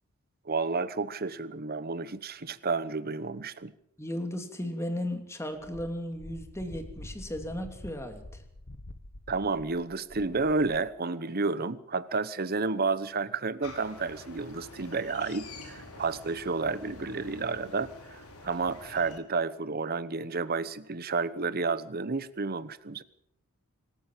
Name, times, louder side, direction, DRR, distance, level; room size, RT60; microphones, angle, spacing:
voice 1, 0.4-3.7 9.3-23.0, right 4 dB, 45° right, 14 dB, 1.0 m, -31 dB
voice 2, 4.0-8.4, left 1 dB, 10° left, 5 dB, 2.9 m, -35 dB
Wind, 5.6-10.9, left 1 dB, 55° left, 1.3 m, -47 dB
sound 1, 13.6-19.2, left 2 dB, 75° left, 4.4 m, -47 dB
25.5 x 14.0 x 7.5 m, 0.74 s
head